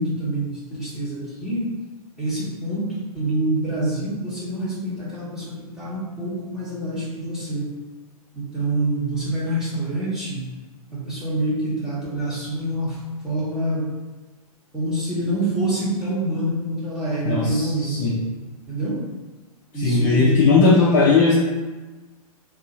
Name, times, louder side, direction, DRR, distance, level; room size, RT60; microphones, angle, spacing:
voice 1, 0.0-1.7 2.2-7.7 8.3-10.5 10.9-13.9 14.7-18.2 18.7-19.0 19.7-20.4, right 1 dB, 5° right, -10 dB, 1.1 m, -26 dB
voice 2, 17.3-18.2 19.7-21.3, left 4 dB, 30° left, -5 dB, 0.5 m, -17 dB
2.7 x 2.4 x 4.0 m, 1.2 s
figure-of-eight pair, 110°, 19 cm